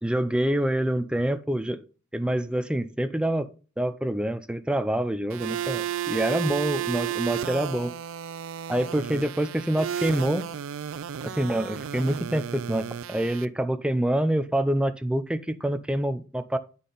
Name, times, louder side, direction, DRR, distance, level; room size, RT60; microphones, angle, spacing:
voice 1, 0.0-1.8 2.1-3.5 3.8-7.9 8.7-10.5 11.2-16.6, right 1 dB, 5° right, 0.4 m, -26 dB
sound 1, 5.3-13.4, right 9 dB, 75° right, 0.4 m, -33 dB
8.4 x 5.6 x 3.9 m
head